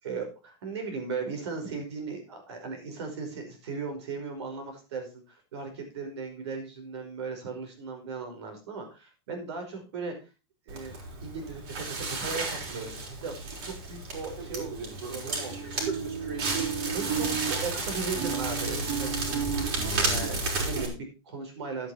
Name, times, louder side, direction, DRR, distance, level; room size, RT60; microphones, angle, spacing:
voice 1, 0.0-10.1 10.7-10.9 11.2-13.3 13.6-14.8 15.1-15.7 16.4-19.3 20.0-21.9, right 4 dB, 90° right, 4 dB, 5.2 m, -37 dB
Crackle, 10.7-20.9, right 4 dB, 65° right, 5.2 m, -31 dB
11.0 x 9.0 x 4.3 m, 0.30 s
supercardioid pair, 150°, 14 cm